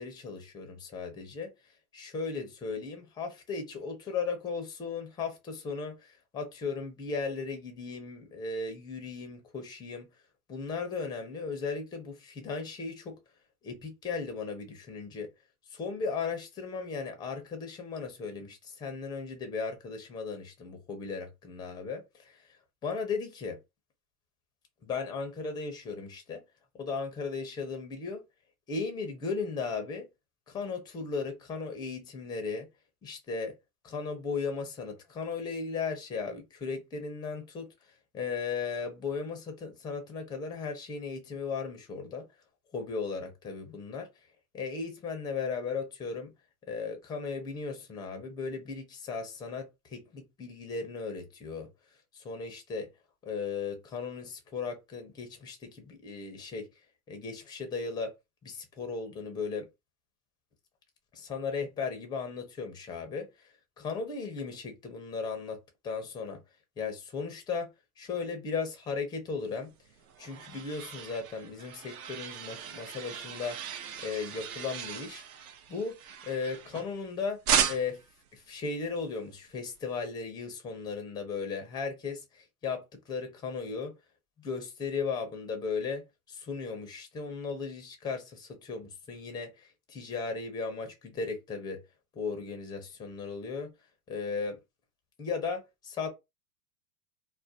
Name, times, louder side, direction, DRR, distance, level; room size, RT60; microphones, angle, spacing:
voice 1, 0.0-1.5 1.9-10.1 10.5-13.2 13.6-15.3 15.7-22.4 22.8-23.6 24.8-26.4 26.7-28.2 28.7-30.1 30.5-32.7 33.0-33.6 33.8-37.7 38.1-42.2 42.7-44.1 44.5-46.3 46.7-51.7 52.1-52.9 53.2-56.7 57.1-58.1 58.4-59.7 61.1-63.3 63.8-65.6 65.8-66.4 66.8-67.7 68.0-69.7 70.2-73.6 74.0-75.2 75.7-76.0 76.2-77.4 77.7-78.0 78.3-83.9 84.4-91.8 92.1-93.7 94.1-94.6 95.2-96.1, left 5 dB, 10° left, 0.4 m, -36 dB
sound 1, 69.7-77.0 77.5-78.1, right 8 dB, 65° right, 0.7 m, -35 dB
2.4 x 2.1 x 2.6 m
hypercardioid pair, 105°, 48 cm